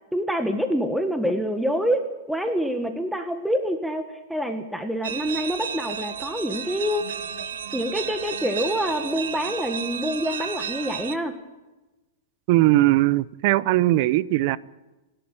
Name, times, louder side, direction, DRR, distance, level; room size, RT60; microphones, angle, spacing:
voice 1, 0.1-2.0 2.3-7.2 7.7-11.4, equal, ahead, 1.6 m, -26 dB
sound 1, 5.0-11.2, right 8 dB, 85° right, 1.6 m, -32 dB
voice 2, 12.5-14.6, right 17 dB, 50° right, 0.8 m, -19 dB
27.0 x 12.0 x 9.1 m
hypercardioid pair, 145°, 0 cm